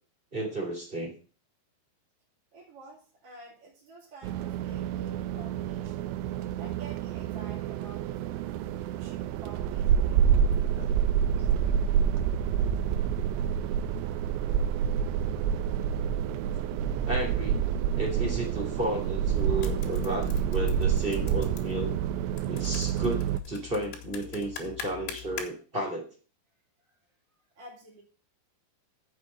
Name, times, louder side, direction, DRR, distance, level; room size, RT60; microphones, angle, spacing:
voice 1, 0.3-1.1 10.8-10.9 13.3-13.5 14.4-14.5 17.1-17.6 17.9-21.9 22.5-26.1, right 1 dB, 15° right, 0 dB, 2.1 m, -33 dB
voice 2, 2.5-8.4 8.9-10.2 27.5-28.0, right 2 dB, 35° right, -6 dB, 3.4 m, -50 dB
sound 1, 4.2-23.4, right 8 dB, 85° right, 3.0 m, -28 dB
sound 2, 19.4-25.5, left 8 dB, 80° left, 3.8 m, -44 dB
7.2 x 6.9 x 7.5 m, 0.36 s
omnidirectional pair, 5.2 m